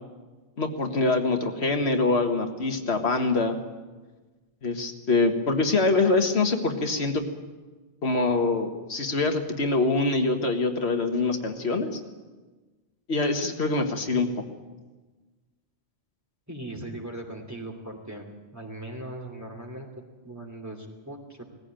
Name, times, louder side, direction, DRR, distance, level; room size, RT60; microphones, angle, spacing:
voice 1, 0.6-3.6 4.6-7.2 8.0-12.0 13.1-14.3, left 3 dB, 85° left, 4 dB, 1.9 m, -24 dB
voice 2, 16.5-18.2 18.5-21.4, right 1 dB, 15° right, 2 dB, 2.8 m, -39 dB
19.5 x 15.0 x 9.0 m, 1.3 s
omnidirectional pair, 1.1 m